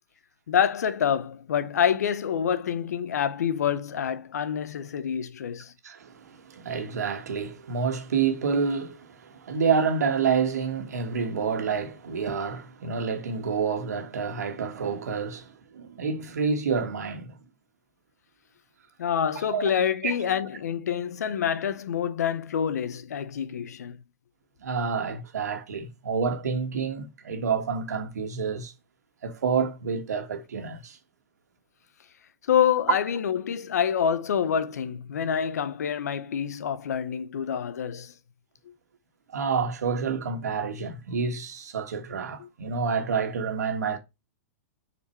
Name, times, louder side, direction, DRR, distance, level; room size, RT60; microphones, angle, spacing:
voice 1, 0.5-5.7 19.0-24.0 32.5-38.1 42.4-42.5, left 8 dB, 80° left, 0.8 m, -27 dB
voice 2, 5.8-17.4 19.5-19.7 20.0-20.1 24.6-28.7 29.2-31.0 39.3-44.0, right 5 dB, 85° right, 1.6 m, -28 dB
7.1 x 4.3 x 4.5 m
hypercardioid pair, 140°, 9 cm